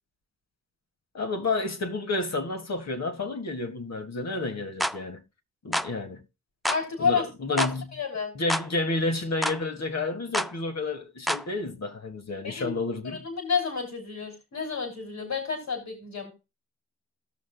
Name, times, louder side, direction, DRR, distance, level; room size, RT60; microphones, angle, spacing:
voice 1, 1.1-5.2 5.6-6.2 7.0-7.9 8.4-13.2, left 2 dB, 65° left, 1.8 m, -30 dB
sound 1, 4.8-5.0 5.7-5.9 6.6-6.8 7.6-7.8 8.5-8.7 9.4-9.6 10.3-10.5 11.3-11.5, equal, ahead, 0.4 m, -27 dB
voice 2, 6.6-7.2 7.5-8.3 12.4-12.8 13.0-16.3, left 5 dB, 80° left, 3.3 m, -30 dB
17.0 x 6.4 x 2.3 m
cardioid pair, 55°, 29 cm